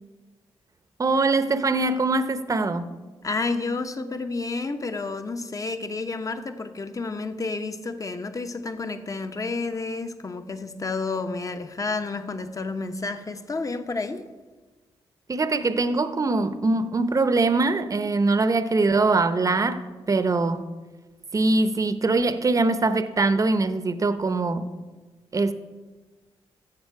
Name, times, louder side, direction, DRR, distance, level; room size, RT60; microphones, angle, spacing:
voice 1, 1.0-2.9 15.3-20.6 21.3-24.7 25.3-25.5, right 3 dB, 30° right, 0.8 m, -22 dB
voice 2, 3.2-14.3, left 3 dB, 30° left, 1.0 m, -30 dB
13.5 x 7.5 x 4.7 m
cardioid pair, 70°, 11 cm